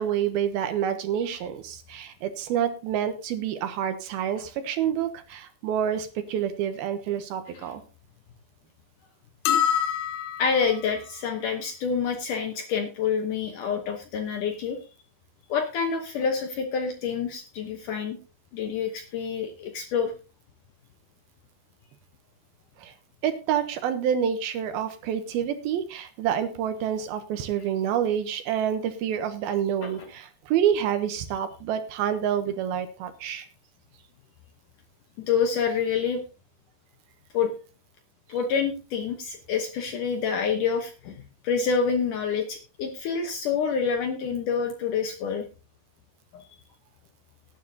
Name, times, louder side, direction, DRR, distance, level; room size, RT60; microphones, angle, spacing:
voice 1, 0.0-7.8 22.8-22.9 23.2-33.5, right 9 dB, 75° right, 9 dB, 2.5 m, -28 dB
sound 1, 9.5-10.8, left 9 dB, 85° left, 3.0 m, -25 dB
voice 2, 10.4-14.8 15.5-18.2 18.5-20.1 29.8-30.1 35.2-36.2 37.3-37.5 38.3-45.5 46.3-46.5, left 6 dB, 70° left, 5 dB, 2.1 m, -27 dB
18.0 x 9.6 x 2.8 m, 0.33 s
omnidirectional pair, 4.9 m